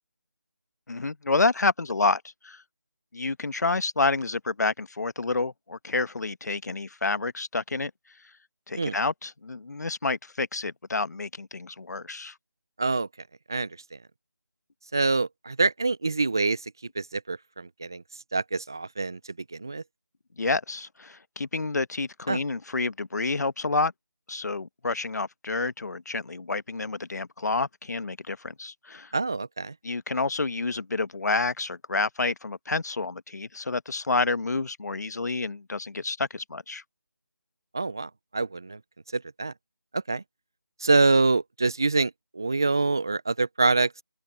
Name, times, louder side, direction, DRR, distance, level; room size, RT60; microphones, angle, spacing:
voice 1, 0.9-2.6 3.1-7.9 8.7-12.3 20.4-23.9 24.3-29.1 29.8-36.8, left 3 dB, 55° left, 1.3 m, -29 dB
voice 2, 14.9-18.0 18.3-19.2 19.5-19.8 22.3-22.4 29.1-29.7 37.7-38.8 39.1-39.5 39.9-40.2 40.8-44.0, right 3 dB, 10° right, 0.3 m, -25 dB
open air
figure-of-eight pair, 165°, 10 cm